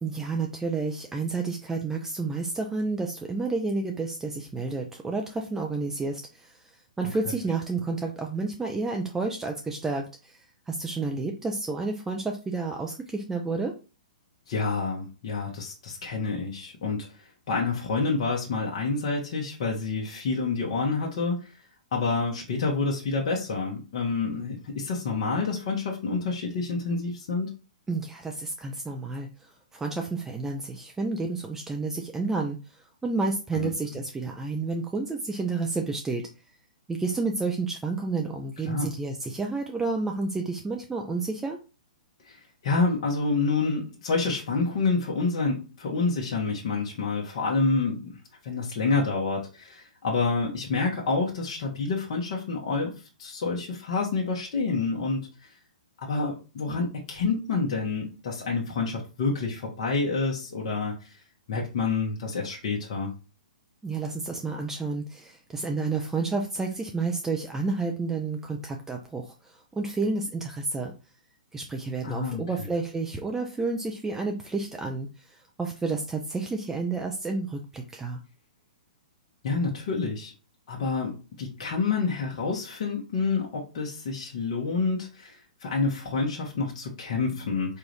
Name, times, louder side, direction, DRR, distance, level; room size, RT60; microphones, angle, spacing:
voice 1, 0.0-6.6 7.0-10.4 10.7-13.7 27.9-36.3 36.9-41.6 63.8-70.9 71.5-78.2, right 3 dB, 10° right, 2 dB, 0.5 m, -30 dB
voice 2, 14.5-21.5 21.9-27.5 33.5-33.7 38.6-38.9 42.3-48.2 48.4-52.9 53.2-55.5 56.0-61.2 61.5-63.1 72.0-72.7 79.4-80.3 80.7-87.8, left 4 dB, 50° left, -1 dB, 1.1 m, -28 dB
4.6 x 2.5 x 3.3 m, 0.32 s
hypercardioid pair, 120°, 4 cm